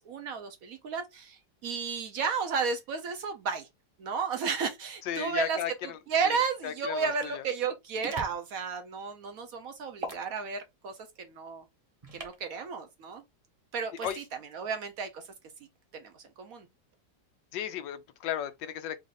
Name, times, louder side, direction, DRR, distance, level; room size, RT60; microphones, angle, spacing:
voice 1, 0.0-3.7 4.0-11.6 12.1-13.2 13.7-15.3 15.9-16.7, right 5 dB, 65° right, 0.9 m, -33 dB
voice 2, 5.1-5.7 6.3-6.4 6.6-7.1 14.0-14.2 17.5-19.0, left 10 dB, 85° left, 1.3 m, -34 dB
sound 1, 8.0-8.4 10.0-10.2 12.0-12.4 14.0-14.3, right 3 dB, 30° right, 0.7 m, -39 dB
4.0 x 2.5 x 3.9 m
omnidirectional pair, 1.9 m